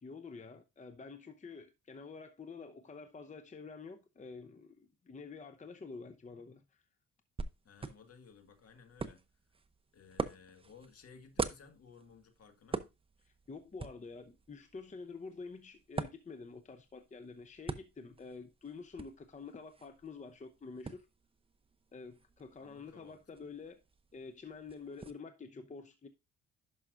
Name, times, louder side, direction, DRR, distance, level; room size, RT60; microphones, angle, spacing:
voice 1, 0.0-6.8 13.5-21.1 21.9-23.8 24.1-26.1, left 4 dB, 25° left, 0.8 m, -48 dB
sound 1, 7.4-25.1, right 4 dB, 20° right, 0.7 m, -45 dB
voice 2, 7.6-9.2 9.9-12.9 22.6-23.2, left 5 dB, 55° left, 1.8 m, -58 dB
11.0 x 5.7 x 2.5 m
cardioid pair, 90°, 30 cm